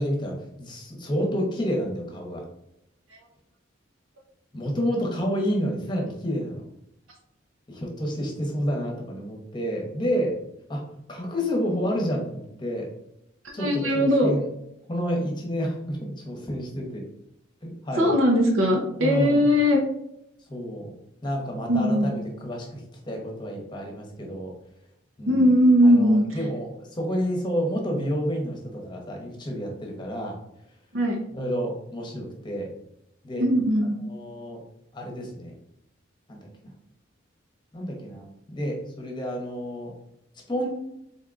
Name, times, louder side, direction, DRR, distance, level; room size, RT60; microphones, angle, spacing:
voice 1, 0.0-2.4 4.5-6.6 7.7-10.4 10.7-10.8 11.1-12.9 13.5-14.4 14.9-17.0 17.6-18.1 19.0-19.4 20.5-20.9 21.2-24.5 25.2-25.5 25.8-30.4 31.3-32.7 33.2-33.4 34.1-34.6 34.9-35.5 36.3-36.5 37.7-39.9 40.5-40.7, equal, 25° left, 0 dB, 0.9 m, -29 dB
voice 2, 13.6-14.3 18.0-19.8 21.7-22.1 25.3-26.2 30.9-31.2 33.4-34.0, equal, 80° right, 0 dB, 0.7 m, -19 dB
4.1 x 3.6 x 2.5 m, 0.80 s
head